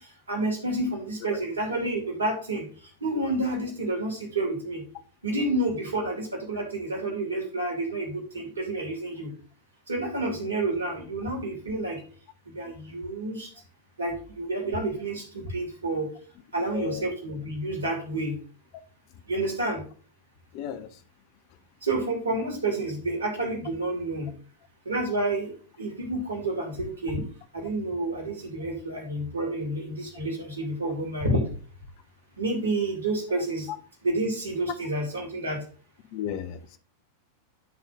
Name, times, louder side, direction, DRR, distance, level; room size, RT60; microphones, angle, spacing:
voice 1, 0.3-2.7 3.0-4.8 5.2-9.3 9.9-12.0 12.5-13.5 14.0-16.1 16.5-18.4 19.3-19.8 21.8-24.3 24.9-27.2 27.5-31.5 32.4-33.7 34.0-35.6, right 2 dB, 75° right, 2.5 m, -29 dB
voice 2, 16.7-17.1 20.5-21.0 33.7-33.8 36.1-36.8, left 9 dB, 45° left, 0.8 m, -35 dB
11.0 x 4.1 x 3.8 m
figure-of-eight pair, 90°, 0 cm